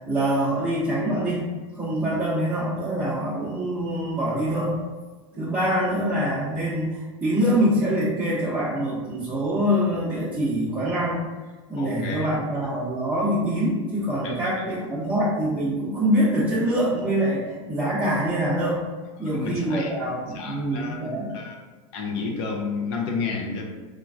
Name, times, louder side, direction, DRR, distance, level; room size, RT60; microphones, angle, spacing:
voice 1, 0.1-1.5 1.7-4.8 5.4-11.2 11.7-18.8 19.2-21.3, equal, 10° right, -11 dB, 0.7 m, -24 dB
voice 2, 11.8-12.2 14.2-14.6 19.2-19.9 20.3-21.0 21.3-21.5 21.9-23.6, left 4 dB, 60° left, 0 dB, 0.6 m, -31 dB
3.1 x 2.4 x 2.4 m, 1.3 s
hypercardioid pair, 105°, 17 cm